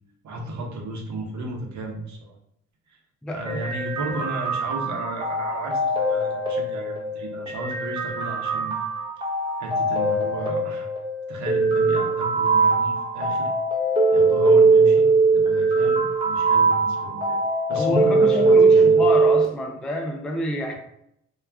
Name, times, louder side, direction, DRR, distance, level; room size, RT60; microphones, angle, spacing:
voice 1, 0.2-2.3 2.9-3.0 3.3-8.8 9.6-10.9 11.3-13.5 14.1-17.4 17.7-19.1, right 2 dB, 65° right, 1 dB, 0.8 m, -34 dB
voice 2, 3.2-3.6 17.8-20.7, left 1 dB, 5° left, 3 dB, 0.3 m, -28 dB
sound 1, 3.5-19.4, right 3 dB, 15° right, 0.7 m, -21 dB
2.3 x 2.3 x 3.3 m, 0.74 s
cardioid pair, 90°, 30 cm